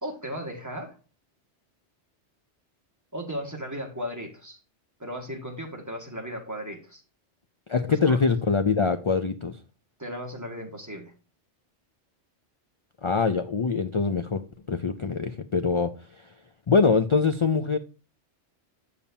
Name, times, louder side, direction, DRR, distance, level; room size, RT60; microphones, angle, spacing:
voice 1, 0.0-1.0 3.1-4.6 5.0-7.0 7.9-8.2 10.0-11.1, equal, 15° right, 1.7 m, -36 dB
voice 2, 7.7-9.6 13.0-16.3 16.7-17.8, left 4 dB, 55° left, 0.3 m, -24 dB
8.4 x 7.0 x 2.7 m
omnidirectional pair, 1.2 m